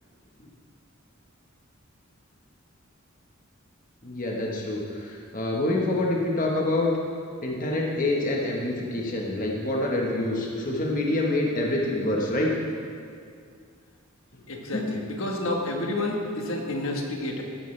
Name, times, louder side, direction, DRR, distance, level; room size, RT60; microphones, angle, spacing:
voice 1, 4.0-6.9 7.4-12.5 14.7-15.0, left 1 dB, 40° left, -2 dB, 1.2 m, -26 dB
voice 2, 14.5-17.4, left 1 dB, 75° left, 1 dB, 1.4 m, -29 dB
14.5 x 10.0 x 3.3 m, 2.3 s
head